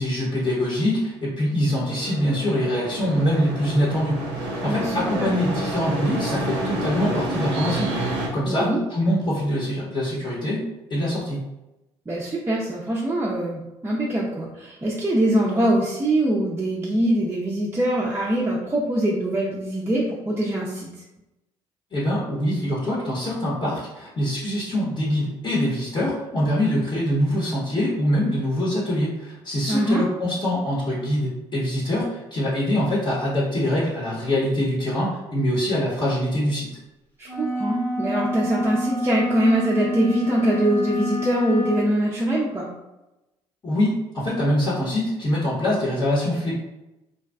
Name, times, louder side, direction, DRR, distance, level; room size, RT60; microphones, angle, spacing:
voice 1, 0.0-11.4 21.9-36.7 43.6-46.5, equal, 30° left, -6 dB, 0.8 m, -24 dB
sound 1, 1.7-8.3, right 1 dB, 80° right, 0.6 m, -29 dB
voice 2, 4.6-5.3 8.5-8.8 12.1-20.9 29.7-30.0 37.2-42.7, right 1 dB, 15° right, -5 dB, 0.5 m, -23 dB
sound 2, 37.2-41.9, equal, 10° left, 0.9 m, -28 dB
2.5 x 2.2 x 2.3 m, 0.98 s
hypercardioid pair, 50°, 15 cm